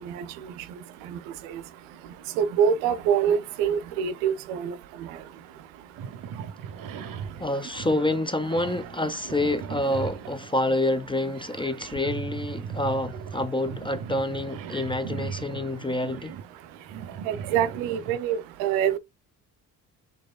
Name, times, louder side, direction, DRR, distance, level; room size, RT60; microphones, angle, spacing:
voice 1, 2.4-4.7 17.3-19.0, right 8 dB, 80° right, 0.7 m, -24 dB
sound 1, 6.0-10.5 11.4-18.2, right 7 dB, 45° right, 0.8 m, -38 dB
voice 2, 7.4-16.4, left 1 dB, 10° left, 0.5 m, -27 dB
4.7 x 3.1 x 2.3 m
hypercardioid pair, 55°, 46 cm